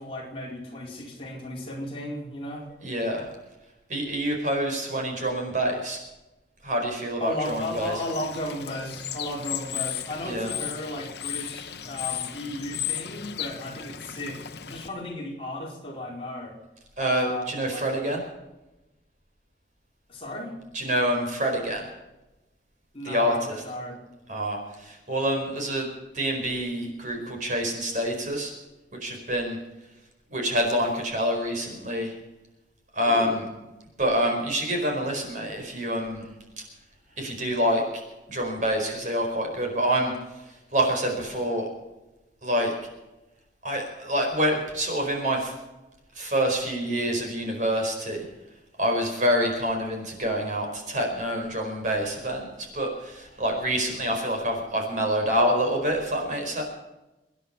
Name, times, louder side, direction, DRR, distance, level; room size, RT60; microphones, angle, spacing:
voice 1, 0.0-2.7 7.2-16.6 17.0-17.8 20.1-20.5 22.9-24.0 33.0-33.4, left 1 dB, 30° left, -2 dB, 4.3 m, -35 dB
voice 2, 2.8-3.3 3.9-6.0 6.6-7.9 10.2-10.5 17.0-18.2 20.7-21.8 23.0-23.5 24.3-25.9 26.1-28.5 29.0-29.6 30.3-32.1 32.9-33.5 34.0-36.3 37.2-38.0 38.3-40.1 40.7-41.7 42.4-42.7 43.6-45.5 46.1-48.2 48.8-52.5 52.7-56.6, equal, 45° right, 2 dB, 4.7 m, -26 dB
Bird / Water, 7.4-14.9, left 11 dB, 70° left, 1.0 m, -35 dB
25.0 x 10.0 x 5.6 m, 1.0 s
head